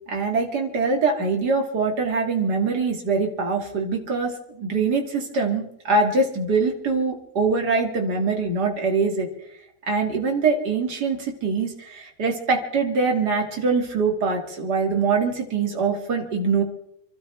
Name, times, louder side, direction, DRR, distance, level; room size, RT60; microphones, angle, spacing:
voice 1, 0.1-9.3 9.9-16.6, right 4 dB, 35° right, 1 dB, 1.9 m, -23 dB
29.0 x 12.5 x 3.3 m, 0.74 s
omnidirectional pair, 4.4 m